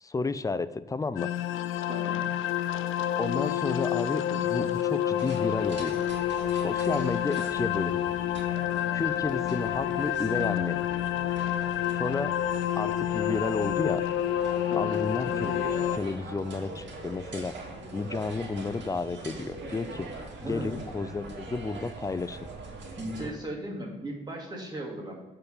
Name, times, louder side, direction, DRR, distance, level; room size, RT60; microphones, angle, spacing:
voice 1, 0.0-1.3 3.2-6.0 6.5-8.1 8.9-10.9 11.9-12.3 12.8-14.0 14.8-15.7 15.9-17.5 17.9-20.1 20.4-22.4, left 3 dB, 15° left, 15 dB, 0.4 m, -32 dB
sound 1, 1.2-16.0, left 11 dB, 80° left, 0.4 m, -29 dB
voice 2, 1.9-2.2 14.7-15.0 20.4-20.7 23.0-25.1, right 1 dB, 20° right, -1 dB, 2.3 m, -37 dB
sound 2, 5.2-23.3, right 3 dB, 65° right, 2.1 m, -42 dB
8.0 x 4.0 x 5.4 m, 1.2 s
cardioid pair, 90°, 20 cm